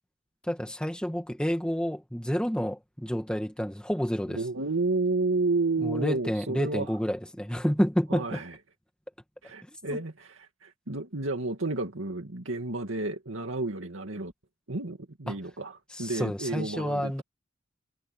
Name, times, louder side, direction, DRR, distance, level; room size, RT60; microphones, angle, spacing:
voice 1, 0.4-4.4 5.8-8.4 9.6-10.0 15.3-15.4 15.9-17.2, equal, 5° left, 2.1 m, -29 dB
voice 2, 4.3-6.9 8.1-8.6 9.4-14.3 14.7-17.2, right 3 dB, 85° right, 2.2 m, -31 dB
head